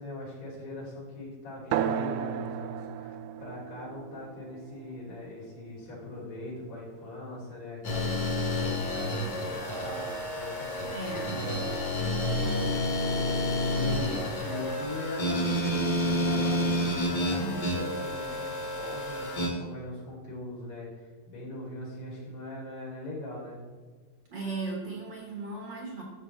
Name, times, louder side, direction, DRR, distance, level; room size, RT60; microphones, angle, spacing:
voice 1, 0.0-23.6, left 2 dB, 75° left, -6 dB, 5.0 m, -41 dB
sound 1, 1.7-6.7, right 9 dB, 85° right, 1.8 m, -35 dB
sound 2, 7.8-19.5, left 1 dB, 40° left, 2.1 m, -29 dB
voice 2, 10.9-11.4 17.0-17.6 24.3-26.0, right 3 dB, 50° right, -1 dB, 1.4 m, -37 dB
12.5 x 7.5 x 3.3 m, 1.5 s
omnidirectional pair, 4.1 m